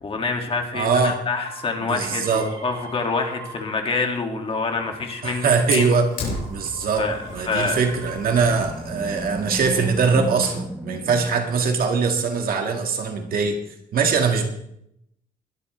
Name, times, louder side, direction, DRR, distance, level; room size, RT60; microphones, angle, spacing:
voice 1, 0.0-6.0 7.0-7.8, left 4 dB, 30° left, 3 dB, 2.2 m, -26 dB
voice 2, 0.7-1.2 1.8-2.5 5.2-6.1 6.5-7.1 7.3-13.6 13.9-14.5, right 5 dB, 55° right, 4 dB, 1.9 m, -22 dB
sound 1, 1.4-4.0 4.3-8.9 9.6-10.2, right 4 dB, 25° right, 4.1 m, -44 dB
Fire, 5.7-10.7, left 2 dB, 55° left, 7.1 m, -36 dB
Animal, 8.2-12.2, right 1 dB, 5° right, 0.8 m, -34 dB
21.0 x 12.0 x 3.3 m, 0.75 s
cardioid pair, 165°, 18 cm